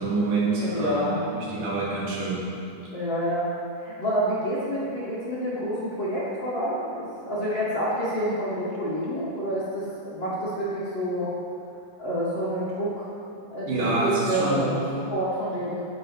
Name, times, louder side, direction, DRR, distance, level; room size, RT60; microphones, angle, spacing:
voice 1, 0.0-2.4 13.7-14.7, right 2 dB, 85° right, -7 dB, 3.8 m, -26 dB
voice 2, 0.6-1.2 2.9-3.5 3.8-11.3 12.0-13.1 13.5-15.8, equal, 40° left, -9 dB, 2.7 m, -28 dB
15.0 x 12.0 x 3.2 m, 2.6 s
omnidirectional pair, 3.7 m